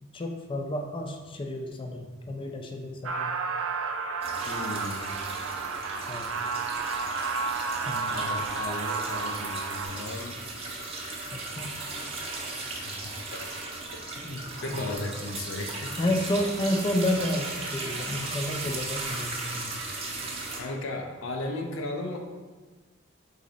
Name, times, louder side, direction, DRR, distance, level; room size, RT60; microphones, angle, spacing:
voice 1, 0.0-3.3 6.1-6.3 7.9-8.4 11.3-11.8 14.7-14.9 16.0-19.7, left 1 dB, 25° left, 3 dB, 0.4 m, -31 dB
sound 1, 3.0-9.9, right 4 dB, 80° right, 0.4 m, -31 dB
sound 2, 4.2-20.6, right 3 dB, 30° right, 0.6 m, -37 dB
voice 2, 4.4-5.1 8.1-10.3 12.6-13.5 14.2-15.9 18.2-18.3 20.6-22.2, left 2 dB, 85° left, 3 dB, 0.5 m, -36 dB
4.1 x 3.1 x 3.8 m, 1.4 s
head